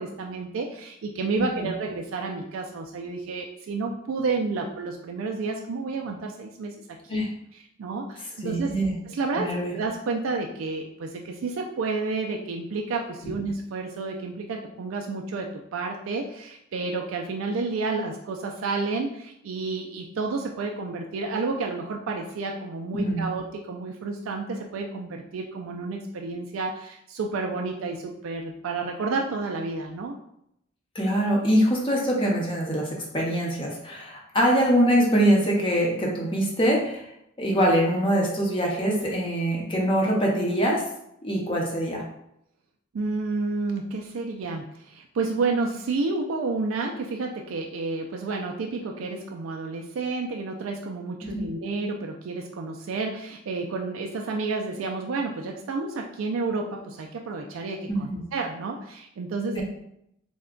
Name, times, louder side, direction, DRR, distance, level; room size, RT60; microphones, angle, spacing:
voice 1, 0.0-7.2 7.5-8.8 9.1-30.2 42.9-59.6, right 3 dB, 70° right, 1 dB, 0.3 m, -30 dB
voice 2, 8.4-8.9 9.4-9.7 13.2-13.3 22.9-23.2 30.9-37.1 37.4-40.8 41.2-42.0 51.3-51.5 57.9-58.2 59.5-59.6, equal, 25° left, -2 dB, 0.7 m, -23 dB
3.4 x 2.2 x 3.7 m, 0.77 s
head